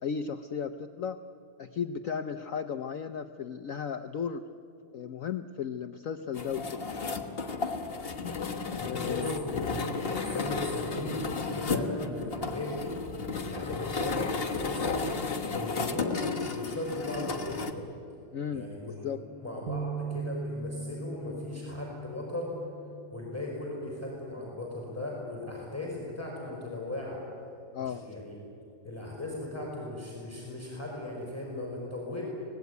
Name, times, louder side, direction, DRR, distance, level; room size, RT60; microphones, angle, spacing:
voice 1, 0.0-1.2 1.6-4.4 4.9-6.9 8.8-9.4 18.3-19.2 27.7-28.0, left 7 dB, 60° left, 9 dB, 0.9 m, -35 dB
sound 1, 6.3-17.7, left 4 dB, 35° left, 1.4 m, -33 dB
voice 2, 8.7-12.8 13.4-15.0 15.5-17.8 18.5-22.6 23.1-27.2 27.8-28.4 28.8-32.2, left 1 dB, 5° left, -3 dB, 5.0 m, -37 dB
sound 2, 19.7-23.9 24.4-24.6 25.5-25.9, right 4 dB, 55° right, 1.3 m, -39 dB
24.5 x 18.5 x 9.5 m, 2.8 s
omnidirectional pair, 2.0 m